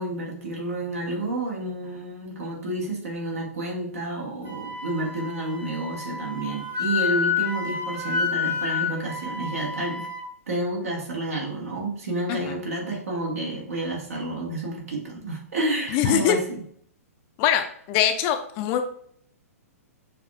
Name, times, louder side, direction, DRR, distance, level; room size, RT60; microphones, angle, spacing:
voice 1, 0.0-10.1 10.5-16.4, right 2 dB, 65° right, -1 dB, 1.5 m, -30 dB
Wind instrument woodwind instrument, 4.4-10.3, left 5 dB, 20° right, 0.9 m, -29 dB
voice 2, 15.9-16.4 17.4-18.8, left 10 dB, 30° left, 7 dB, 0.4 m, -23 dB
6.5 x 2.4 x 2.4 m, 0.63 s
figure-of-eight pair, 115°, 8 cm